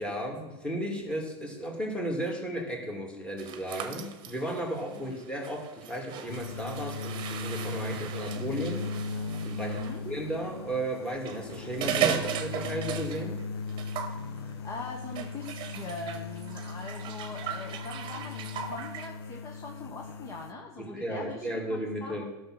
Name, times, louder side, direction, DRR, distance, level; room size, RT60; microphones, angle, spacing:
voice 1, 0.0-8.8 9.4-9.8 10.0-13.4 20.8-22.3, right 1 dB, 10° left, 0 dB, 2.5 m, -34 dB
sound 1, 3.4-10.0 11.1-13.4 13.7-14.2 15.2-19.1, right 9 dB, 35° right, 1.1 m, -37 dB
sound 2, 6.3-20.5, left 4 dB, 80° left, 0.8 m, -38 dB
voice 2, 9.6-10.0 14.1-22.3, left 3 dB, 25° left, 1 dB, 1.1 m, -42 dB
12.0 x 6.5 x 6.1 m, 1.1 s
hypercardioid pair, 120°, 13 cm